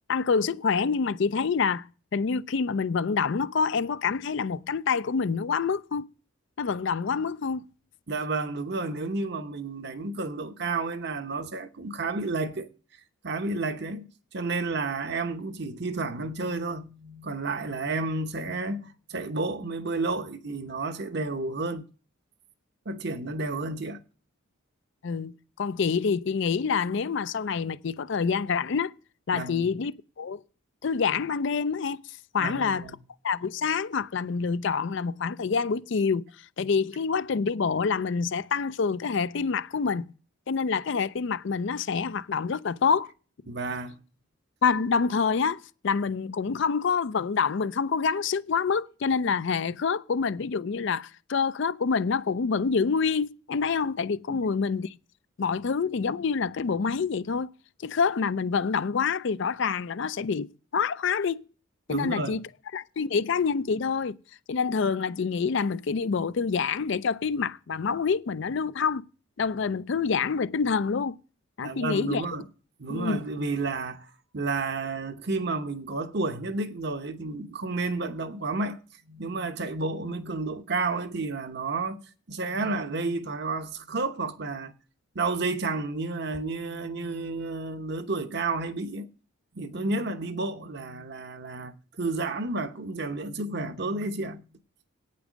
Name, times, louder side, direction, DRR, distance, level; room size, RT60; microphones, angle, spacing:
voice 1, 0.1-1.9 2.1-6.1 6.6-7.6 25.0-28.9 29.3-29.9 30.2-30.4 30.8-32.0 32.3-32.8 33.2-36.3 36.6-40.1 40.5-43.1 44.6-54.9 55.4-57.5 57.8-60.5 60.7-61.4 61.9-62.4 62.7-64.2 64.5-69.0 69.4-71.2 71.6-72.2 72.9-73.2, left 5 dB, 60° left, 0.4 m, -27 dB
voice 2, 8.1-12.7 13.2-14.1 14.3-21.8 22.9-24.0 29.3-29.7 32.4-33.0 43.5-44.0 54.3-54.4 61.9-62.4 71.6-72.4 72.8-78.8 79.1-82.0 82.3-84.7 85.1-89.1 89.5-94.4, right 3 dB, 50° right, 0.9 m, -31 dB
9.0 x 8.5 x 6.2 m
head